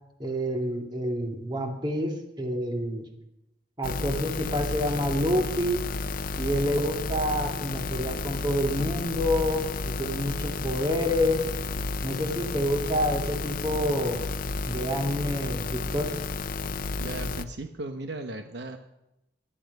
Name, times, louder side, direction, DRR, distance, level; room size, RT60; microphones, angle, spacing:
voice 1, 0.2-3.1 3.8-5.9 6.4-11.5 12.0-14.2 14.7-16.2, equal, 25° right, 3 dB, 2.2 m, -28 dB
sound 1, 3.8-17.4, left 3 dB, 55° left, 0.7 m, -32 dB
voice 2, 17.0-18.8, right 2 dB, 70° right, 6 dB, 1.0 m, -36 dB
18.5 x 11.5 x 5.4 m, 0.89 s
head